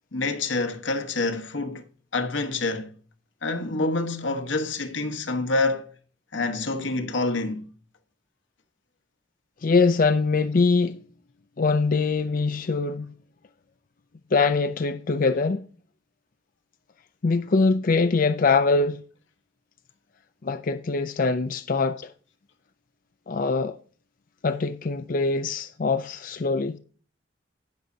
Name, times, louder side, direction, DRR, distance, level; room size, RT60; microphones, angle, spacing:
voice 1, 0.1-1.8 2.1-2.9 3.4-5.9 6.3-7.7 26.1-26.2, left 3 dB, 85° left, 1.3 m, -27 dB
voice 2, 9.6-11.0 11.6-13.1 14.3-15.6 17.2-19.0 20.4-22.0 23.3-23.8 24.4-26.8, left 4 dB, 45° left, 0.5 m, -23 dB
18.5 x 6.4 x 2.7 m
head